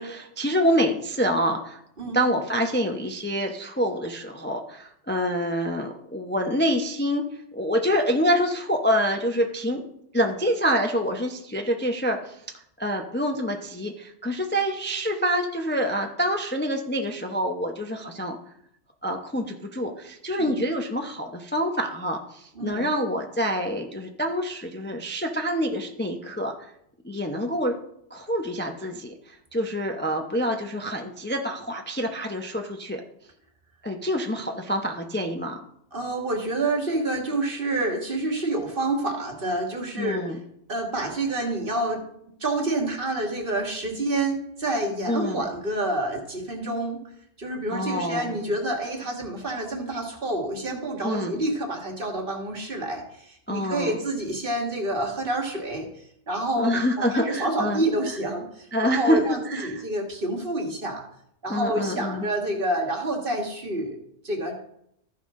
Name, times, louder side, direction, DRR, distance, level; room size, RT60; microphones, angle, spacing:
voice 1, 0.0-1.8 2.1-7.2 7.5-9.8 10.1-12.4 12.8-18.4 19.0-26.5 27.0-27.8 28.1-29.1 29.5-33.0 33.8-35.6 40.0-40.4 45.1-45.5 47.7-48.4 51.0-51.4 53.5-53.9 56.6-57.8 58.7-59.2 59.4-59.8 61.5-62.3, equal, 10° left, 3 dB, 0.6 m, -26 dB
voice 2, 35.9-40.4 40.7-42.0 42.4-47.0 47.4-61.0 61.4-64.6, right 2 dB, 45° right, 1 dB, 1.8 m, -28 dB
14.0 x 5.7 x 3.7 m, 0.73 s
omnidirectional pair, 1.2 m